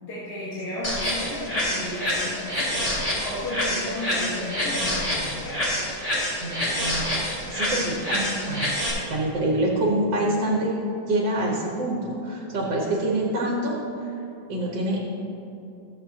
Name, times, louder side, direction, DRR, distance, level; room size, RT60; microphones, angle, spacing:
voice 1, 0.0-2.9 3.2-5.7, left 1 dB, 55° left, -9 dB, 2.1 m, -33 dB
sound 1, 0.8-8.9, left 1 dB, 20° left, 2.1 m, -27 dB
voice 2, 6.4-8.8 9.1-10.7 11.1-13.8 14.0-14.1 14.5-15.0, right 1 dB, 65° right, -3 dB, 1.8 m, -26 dB
14.0 x 7.7 x 2.9 m, 2.8 s
omnidirectional pair, 2.1 m